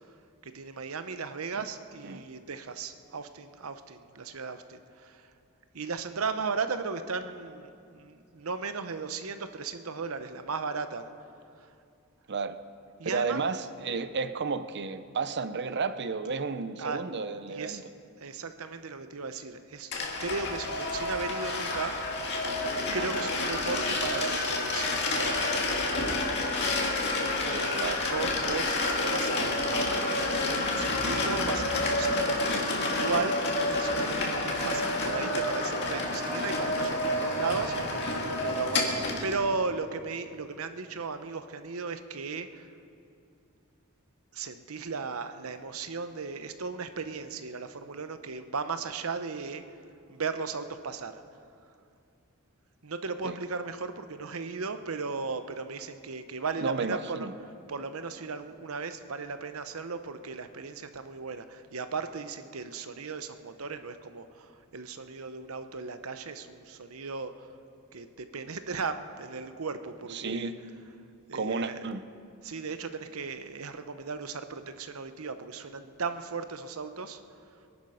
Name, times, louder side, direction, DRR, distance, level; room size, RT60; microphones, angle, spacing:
voice 1, 0.4-5.3 5.7-11.1 11.6-11.7 13.0-13.4 16.8-17.0 17.5-17.8 18.2-19.9 20.2-21.9 22.9-26.5 27.2-38.2 38.4-42.7 44.3-49.6 50.1-51.2 52.8-57.3 57.7-67.5 67.9-70.5 71.3-71.8 72.4-77.2, right 4 dB, 80° right, 10 dB, 0.9 m, -36 dB
voice 2, 13.0-17.8 23.0-23.3 27.8-28.0 34.7-34.9 35.2-35.3 53.2-53.4 56.6-57.3 70.1-70.6 71.3-72.0, right 4 dB, 55° right, 12 dB, 0.6 m, -32 dB
sound 1, 19.9-39.4, left 2 dB, 55° left, 2.1 m, -29 dB
23.0 x 11.0 x 5.0 m, 2.5 s
head